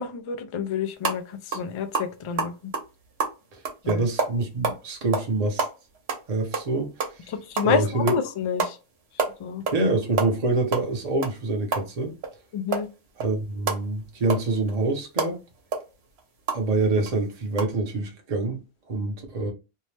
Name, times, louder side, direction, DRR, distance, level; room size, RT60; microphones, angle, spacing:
voice 1, 0.0-2.5 3.8-4.1 7.3-8.8 9.4-9.6 12.5-12.9, left 7 dB, 55° left, 0.3 m, -28 dB
sound 1, 1.0-1.2 1.5-1.7 1.9-4.8 5.1-5.3 5.6-7.2 7.6-7.7 8.1-8.2 8.6-8.8 9.0-9.8 10.1-12.4 12.7-16.6 17.1-17.2 17.5-17.6, right 4 dB, 80° right, 1.0 m, -28 dB
voice 2, 3.9-5.6 6.3-7.3 7.6-8.1 9.7-12.1 13.2-15.4 16.5-19.5, right 2 dB, 45° right, 0.7 m, -26 dB
2.7 x 2.1 x 3.1 m
omnidirectional pair, 1.1 m